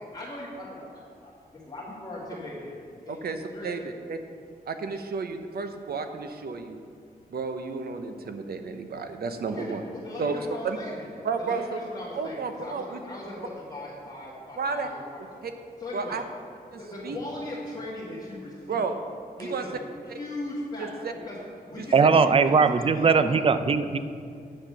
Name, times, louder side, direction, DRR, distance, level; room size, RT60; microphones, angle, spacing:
voice 1, 0.0-2.8 3.0-3.2 3.5-3.9 9.4-11.0 11.4-15.2 15.8-16.2 16.8-18.9 19.4-20.9 21.2-21.4 21.7-22.3 22.6-23.5, left 2 dB, 25° left, -9 dB, 1.7 m, -39 dB
voice 2, 3.1-4.2 4.7-6.8 7.3-9.8 10.2-10.4 10.6-10.8 11.2-11.8 12.2-13.0 14.6-14.9 15.4-15.5 15.9-16.2 16.7-17.2 18.7-19.0 19.4-19.6 20.1-20.2 20.8-21.1 21.8-22.1, right 5 dB, 75° right, 7 dB, 0.8 m, -32 dB
voice 3, 21.9-24.0, right 5 dB, 35° right, 11 dB, 0.4 m, -20 dB
8.8 x 7.5 x 6.5 m, 2.3 s
wide cardioid pair, 150°, 16 cm